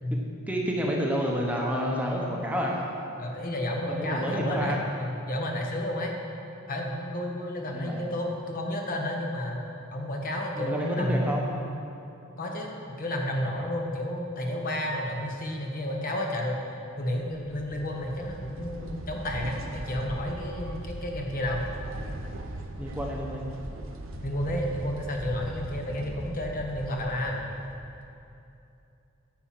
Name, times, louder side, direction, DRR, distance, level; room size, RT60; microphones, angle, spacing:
voice 1, 0.5-2.9 3.9-4.8 7.7-8.1 10.5-11.5 22.8-23.5 26.0-26.1, equal, 5° right, -2 dB, 1.0 m, -29 dB
voice 2, 3.2-6.1 6.7-9.6 9.9-11.7 12.4-12.7 13.0-16.6 17.0-21.6 24.2-27.5, left 1 dB, 40° left, 1 dB, 1.2 m, -31 dB
sound 1, 17.2-28.1, right 1 dB, 65° right, 0.8 m, -39 dB
10.5 x 5.7 x 7.6 m, 2.7 s
head